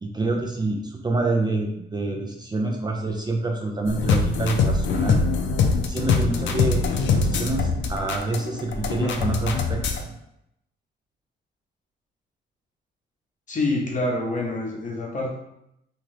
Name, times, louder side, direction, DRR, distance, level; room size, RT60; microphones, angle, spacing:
voice 1, 0.0-5.2 5.9-6.8 7.1-9.8 10.1-10.2, right 2 dB, 20° right, 1 dB, 0.5 m, -27 dB
sound 1, 3.9-10.0, left 4 dB, 65° left, 0.5 m, -23 dB
voice 2, 13.5-15.3, left 2 dB, 40° left, 0 dB, 0.8 m, -26 dB
2.9 x 2.4 x 3.2 m, 0.80 s
cardioid pair, 90°, 20 cm